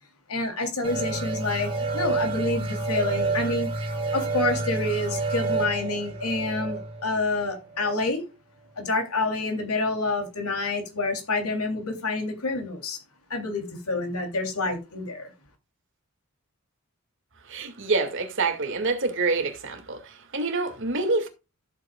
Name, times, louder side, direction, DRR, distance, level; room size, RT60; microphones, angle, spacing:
voice 1, 0.3-3.7 4.1-8.2 8.8-13.0 13.3-15.3, left 2 dB, 85° left, 3.3 m, -28 dB
sound 1, 0.8-8.1, right 3 dB, 25° right, 3.5 m, -29 dB
voice 2, 17.5-21.3, right 3 dB, 60° right, 2.4 m, -27 dB
14.5 x 8.3 x 2.4 m
head